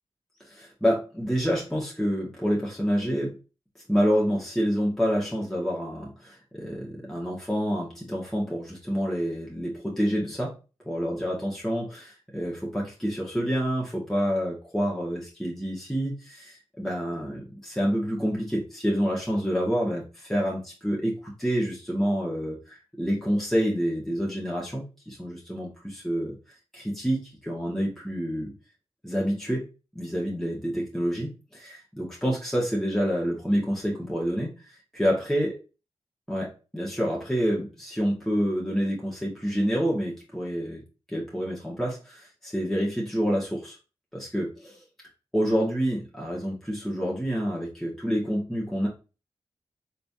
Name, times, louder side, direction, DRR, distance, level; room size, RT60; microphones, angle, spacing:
voice 1, 0.5-3.4 3.9-10.5 10.9-26.3 26.7-28.5 29.0-29.7 29.9-34.5 34.9-35.5 36.3-40.8 41.1-43.8 44.1-44.8 45.3-48.9, equal, 5° left, -4 dB, 1.6 m, -28 dB
4.1 x 3.3 x 2.7 m, 0.31 s
cardioid pair, 40°, 11 cm